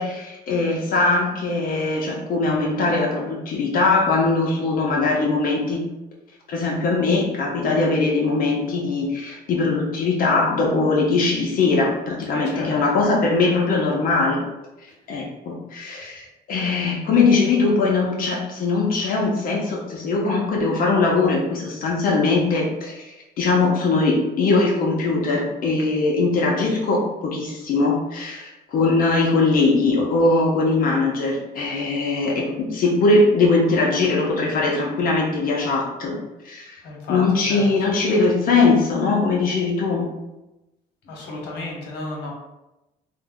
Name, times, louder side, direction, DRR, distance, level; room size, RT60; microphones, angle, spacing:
voice 1, 0.0-5.8 6.5-14.4 15.1-16.2 16.5-36.2 36.4-36.8 37.1-40.1, left 3 dB, 55° left, -2 dB, 0.6 m, -21 dB
voice 2, 12.3-12.7 14.9-15.0 36.8-37.6 41.0-42.3, left 2 dB, 80° left, -1 dB, 0.9 m, -33 dB
2.6 x 2.0 x 3.5 m, 0.98 s
cardioid pair, 110°, 17 cm